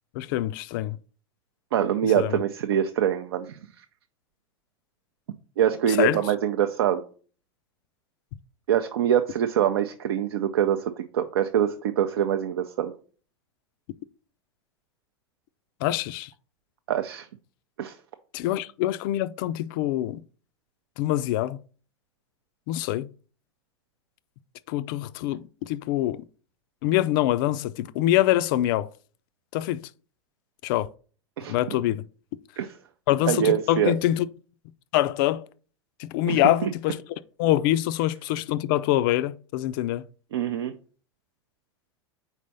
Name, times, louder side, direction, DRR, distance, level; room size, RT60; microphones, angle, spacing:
voice 1, 0.1-1.0 2.2-2.4 5.9-6.2 15.8-16.3 18.3-20.2 21.0-21.6 22.7-23.1 24.7-26.2 26.8-28.9 29.5-29.8 30.6-30.9 31.5-32.0 33.1-34.3 34.9-35.5 36.0-37.0 37.4-40.0, left 14 dB, 50° left, 0.4 m, -25 dB
voice 2, 1.7-3.6 5.6-7.0 8.7-12.9 16.9-17.3 17.8-18.0 31.4-31.5 32.6-32.7 33.3-33.9 36.3-36.7 40.3-40.7, right 10 dB, 65° right, 0.5 m, -24 dB
4.6 x 4.1 x 5.4 m
figure-of-eight pair, 90°, 14 cm